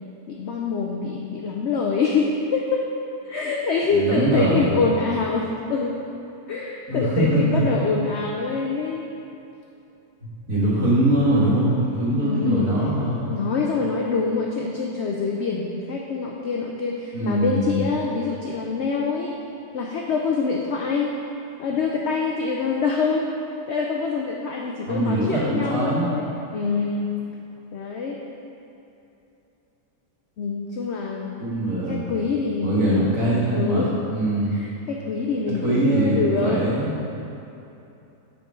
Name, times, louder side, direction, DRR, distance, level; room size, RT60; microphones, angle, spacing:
voice 1, 0.3-2.9 3.2-6.0 6.5-9.1 12.2-12.7 13.3-19.4 19.7-21.1 21.6-23.3 23.7-27.1 27.7-28.2 30.4-31.4 31.9-33.1 33.5-34.0 34.5-37.1, left 4 dB, 65° left, -1 dB, 0.7 m, -25 dB
voice 2, 3.9-4.9 6.9-7.6 10.5-13.4 17.1-17.8 24.9-26.1 31.4-32.1 32.6-34.6 35.6-36.9, right 1 dB, 60° right, -7 dB, 2.0 m, -22 dB
6.7 x 5.3 x 4.7 m, 2.9 s
omnidirectional pair, 1.6 m